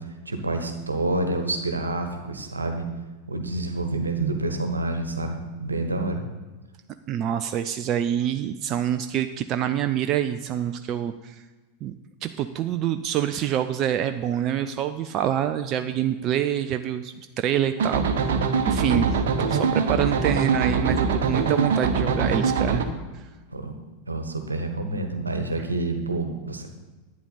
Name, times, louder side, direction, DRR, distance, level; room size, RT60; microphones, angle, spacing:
voice 1, 0.2-2.9 3.3-6.2 18.8-19.1 23.5-23.7 24.1-26.7, right 2 dB, 80° right, 6 dB, 1.2 m, -28 dB
voice 2, 7.1-11.4 11.8-11.9 12.2-22.9 23.1-23.3, right 10 dB, 35° right, 9 dB, 0.4 m, -26 dB
sound 1, 17.8-22.8, right 5 dB, 60° right, 1.0 m, -23 dB
11.0 x 9.4 x 4.1 m, 1.2 s
figure-of-eight pair, 90°, 0 cm